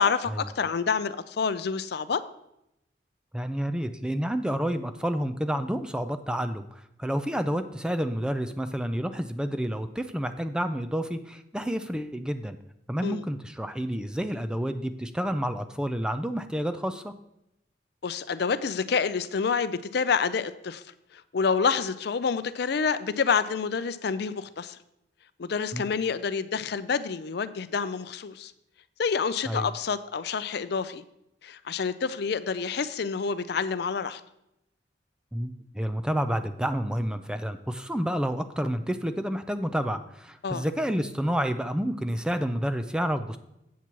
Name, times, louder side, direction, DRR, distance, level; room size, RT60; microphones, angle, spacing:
voice 1, 0.0-2.2 13.0-13.2 18.0-20.8 21.3-24.8 25.4-28.5 29.0-31.0 31.4-34.2 40.4-40.7, left 5 dB, 60° left, 13 dB, 0.5 m, -28 dB
voice 2, 3.3-12.6 12.9-17.1 25.7-25.9 29.5-29.7 35.3-43.4, equal, 5° right, 9 dB, 0.4 m, -29 dB
8.2 x 7.3 x 4.6 m, 0.83 s
head